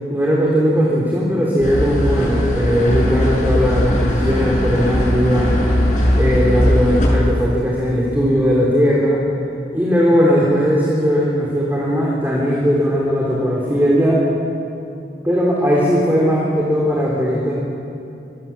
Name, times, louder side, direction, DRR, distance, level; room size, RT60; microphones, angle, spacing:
voice 1, 0.1-5.6 6.2-9.2 9.7-14.2 15.2-17.5, equal, 10° right, -4 dB, 3.5 m, -18 dB
sound 1, 1.6-7.1, equal, 45° left, 7.1 m, -19 dB
25.5 x 22.5 x 7.2 m, 2.6 s
head